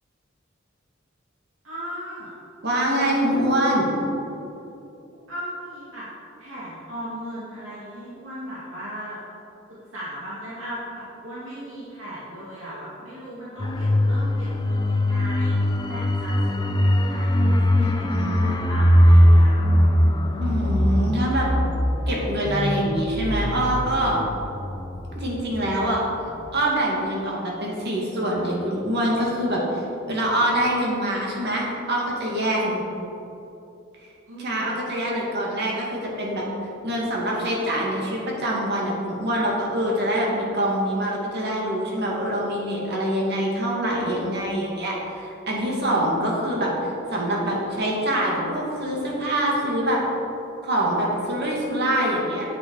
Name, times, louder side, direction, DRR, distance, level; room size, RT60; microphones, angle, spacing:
voice 1, 1.6-2.3 5.1-6.1 6.4-9.2 9.9-19.6 20.5-21.1 32.6-32.8 34.3-34.7 45.6-46.0 51.9-52.1, equal, 80° right, -9 dB, 2.2 m, -37 dB
voice 2, 2.6-3.9 17.8-18.5 20.4-21.5 22.1-24.2 25.1-26.0 26.5-32.8 34.4-36.5 36.8-46.7 47.1-50.0 50.6-52.4, right 1 dB, 60° right, -3 dB, 2.3 m, -25 dB
sound 1, 13.6-26.0 26.3-26.4, equal, 20° left, 0.6 m, -21 dB
10.5 x 8.1 x 4.8 m, 2.9 s
head